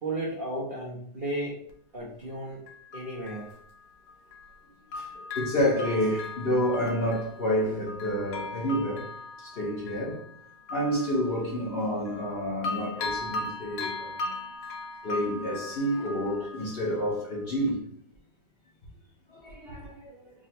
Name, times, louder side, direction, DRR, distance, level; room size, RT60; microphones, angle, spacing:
voice 1, 0.0-1.6 1.9-2.6 2.9-3.5, right 1 dB, 70° right, 0.5 m, -34 dB
Bell, 1.7-1.8 2.7-4.6 4.9-12.3 12.6-17.3 17.7-17.8, left 2 dB, 80° left, 1.2 m, -38 dB
voice 2, 4.9-9.1 9.4-10.2 10.7-14.3 15.0-17.8 19.3-20.3, equal, 50° left, 0.7 m, -29 dB
3.6 x 2.1 x 4.1 m
omnidirectional pair, 1.9 m